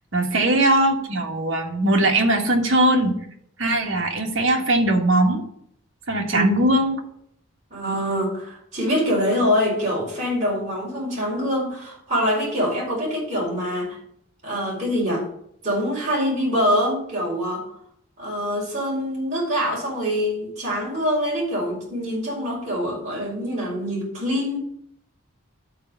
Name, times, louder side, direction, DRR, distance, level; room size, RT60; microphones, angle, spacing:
voice 1, 0.1-3.1 3.6-5.4 6.1-7.0, right 1 dB, 60° right, 0 dB, 1.7 m, -20 dB
voice 2, 7.7-14.0 14.4-15.2 15.6-17.7 18.2-24.6, equal, 35° right, -5 dB, 4.4 m, -24 dB
12.0 x 4.5 x 5.5 m, 0.70 s
head